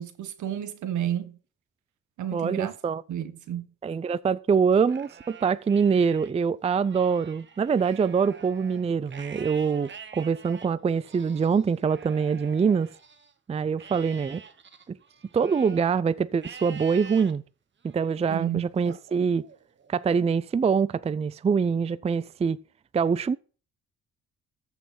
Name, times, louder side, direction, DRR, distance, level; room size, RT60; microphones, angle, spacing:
voice 1, 0.0-1.4 2.2-2.7 3.1-3.7 18.3-18.6, right 11 dB, 75° right, 1.6 m, -31 dB
voice 2, 2.3-3.0 3.8-12.9 13.5-14.4 14.9-15.0 15.3-17.4 17.9-19.4 19.9-22.6 22.9-23.4, right 6 dB, 20° right, 0.4 m, -24 dB
Livestock farm animals working animals, 4.7-6.3 6.8-13.3 13.8-15.9 16.4-17.3 17.8-18.3 18.8-19.9, right 6 dB, 40° right, 1.4 m, -47 dB
14.0 x 5.7 x 5.9 m
cardioid pair, 90°, 30 cm